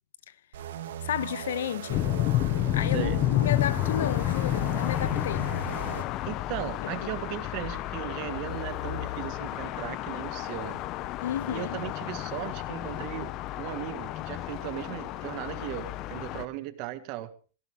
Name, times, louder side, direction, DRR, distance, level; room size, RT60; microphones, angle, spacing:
sound 1, 0.5-6.1, right 11 dB, 80° right, 2.2 m, -38 dB
voice 1, 1.0-2.1 2.7-5.5 6.8-6.9 11.2-11.8, left 10 dB, 80° left, 1.0 m, -32 dB
sound 2, 1.9-16.4, left 15 dB, 35° left, 0.8 m, -31 dB
voice 2, 6.3-10.8 11.5-13.3 13.6-17.3, right 14 dB, 45° right, 1.7 m, -37 dB
17.5 x 16.5 x 3.6 m
supercardioid pair, 145°, 0 cm